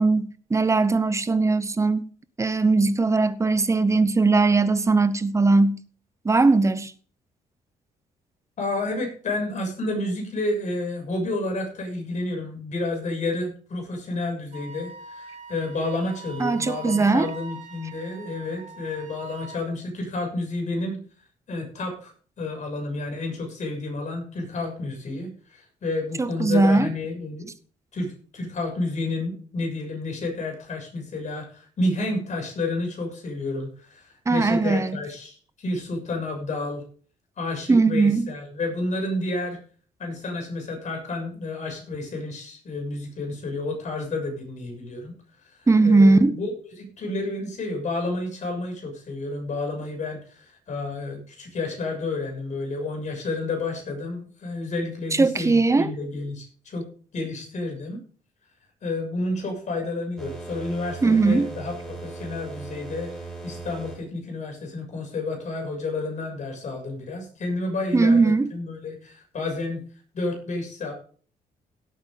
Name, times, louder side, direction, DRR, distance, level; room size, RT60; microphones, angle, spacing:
voice 1, 0.0-2.0 2.4-5.8 6.2-6.9 16.4-17.3 26.2-26.9 34.3-35.0 37.7-38.3 45.7-46.4 55.2-55.9 61.0-61.5 67.9-68.5, right 3 dB, 20° right, 0.9 m, -19 dB
voice 2, 8.6-21.0 21.5-22.1 22.4-27.5 27.9-36.8 37.4-39.6 40.0-45.1 45.4-56.9 57.1-58.0 58.8-69.8 70.1-70.9, left 2 dB, 50° left, 7.0 m, -30 dB
Wind instrument woodwind instrument, 14.5-19.6, right 5 dB, 55° right, 3.1 m, -42 dB
sound 1, 60.2-64.0, right 3 dB, 5° left, 6.1 m, -38 dB
17.0 x 8.8 x 3.8 m
cardioid pair, 110°, 15 cm